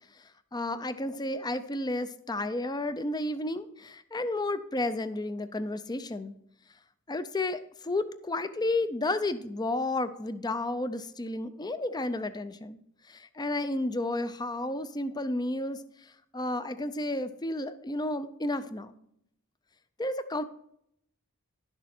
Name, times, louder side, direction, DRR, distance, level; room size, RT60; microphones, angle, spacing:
voice 1, 0.1-6.4 7.1-12.8 13.1-18.9 20.0-20.4, left 2 dB, 20° left, 12 dB, 0.5 m, -32 dB
11.5 x 6.7 x 4.3 m, 0.72 s
head